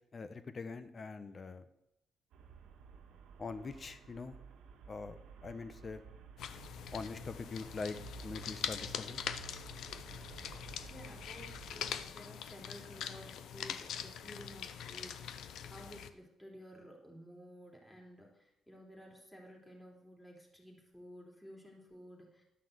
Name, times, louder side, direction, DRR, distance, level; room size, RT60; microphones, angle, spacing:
voice 1, 0.1-1.6 3.4-4.4 4.9-6.1 6.9-8.0 8.2-9.2, left 4 dB, 35° left, 11 dB, 1.0 m, -43 dB
Traffic noise roadway noise, 2.3-12.1, right 6 dB, 80° right, 1.7 m, -54 dB
sound 1, 6.4-16.1, left 8 dB, 75° left, 0.7 m, -43 dB
voice 2, 10.9-22.4, equal, 10° left, -2 dB, 3.2 m, -54 dB
12.0 x 5.7 x 8.0 m, 0.84 s
cardioid pair, 90°, 0 cm